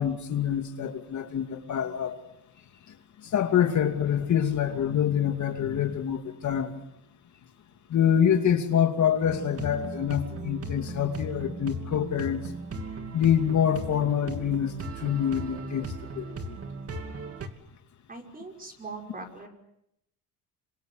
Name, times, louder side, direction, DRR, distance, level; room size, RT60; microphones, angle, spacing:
voice 1, 0.0-2.2 3.2-6.7 7.9-12.4 13.1-15.9 16.1-16.6, left 9 dB, 45° left, 5 dB, 2.5 m, -26 dB
sound 1, 9.2-17.5, right 2 dB, 35° right, 2.9 m, -37 dB
voice 2, 18.1-19.5, right 3 dB, 20° right, 3 dB, 5.5 m, -41 dB
28.0 x 26.0 x 7.8 m, 0.80 s
cardioid pair, 130°, 39 cm